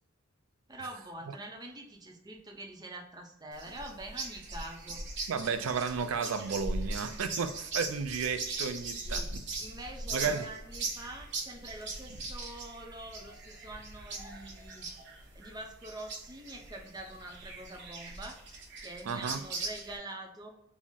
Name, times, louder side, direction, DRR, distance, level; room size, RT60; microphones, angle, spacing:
voice 1, 0.7-5.0 8.9-9.3 9.6-14.9 15.3-18.4 18.8-20.5, right 1 dB, 20° right, 0.6 m, -45 dB
sound 1, 3.5-20.0, right 2 dB, 60° right, 0.9 m, -40 dB
voice 2, 5.3-9.4 10.1-10.5 19.0-19.4, right 5 dB, 85° right, 0.4 m, -33 dB
3.6 x 2.0 x 4.0 m
head